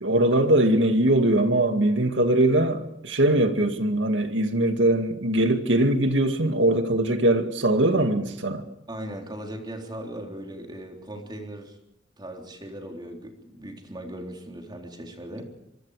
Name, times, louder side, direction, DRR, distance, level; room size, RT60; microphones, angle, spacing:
voice 1, 0.0-8.7, right 1 dB, 75° right, 2.3 m, -21 dB
voice 2, 8.9-11.8 12.2-15.5, right 1 dB, 25° right, 3.7 m, -38 dB
25.0 x 24.0 x 5.0 m
head